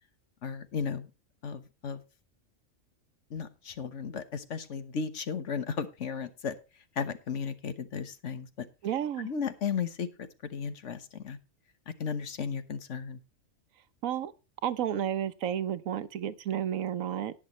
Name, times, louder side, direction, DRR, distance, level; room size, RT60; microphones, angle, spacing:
voice 1, 0.4-1.1 1.4-2.0 3.3-6.6 7.0-8.7 9.2-11.4 12.0-13.2, left 6 dB, 65° left, 1.4 m, -35 dB
voice 2, 8.8-9.3 14.0-14.3 14.6-17.3, right 10 dB, 90° right, 1.2 m, -31 dB
18.5 x 6.4 x 3.0 m
omnidirectional pair, 1.4 m